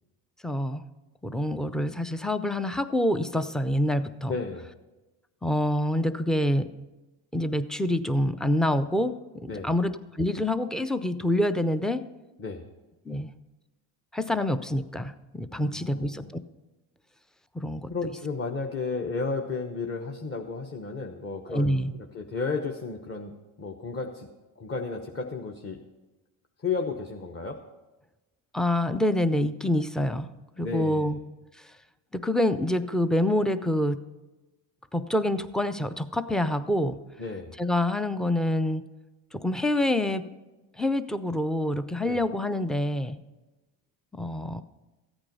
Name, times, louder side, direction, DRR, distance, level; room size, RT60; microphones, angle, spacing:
voice 1, 0.4-0.8 1.2-4.3 5.4-6.7 7.3-12.0 13.1-13.3 14.1-16.2 17.5-17.9 21.5-21.9 28.5-30.3 30.6-31.2 32.1-34.0 34.9-37.0 37.6-38.8 39.3-40.3 40.8-43.2 44.1-44.6, left 1 dB, ahead, 12 dB, 0.4 m, -26 dB
voice 2, 4.3-4.7 9.5-9.7 12.4-12.6 15.5-16.3 17.9-21.8 22.1-23.3 23.6-24.3 24.6-25.8 26.6-27.6 30.6-31.2 37.2-37.5 42.0-42.2, left 4 dB, 25° left, 2 dB, 1.0 m, -33 dB
14.0 x 8.9 x 5.3 m, 1.1 s
supercardioid pair, 85°, 49 cm